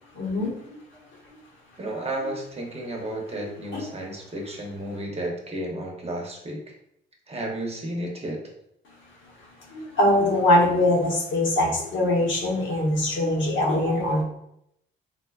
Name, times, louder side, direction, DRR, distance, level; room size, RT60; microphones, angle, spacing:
voice 1, 0.1-0.5 3.7-3.9 9.7-14.2, left 1 dB, 75° left, -2 dB, 1.0 m, -22 dB
voice 2, 1.8-6.6 7.3-8.4, right 1 dB, 30° right, 0 dB, 0.8 m, -32 dB
3.7 x 2.2 x 2.3 m, 0.75 s
cardioid pair, 90°, 20 cm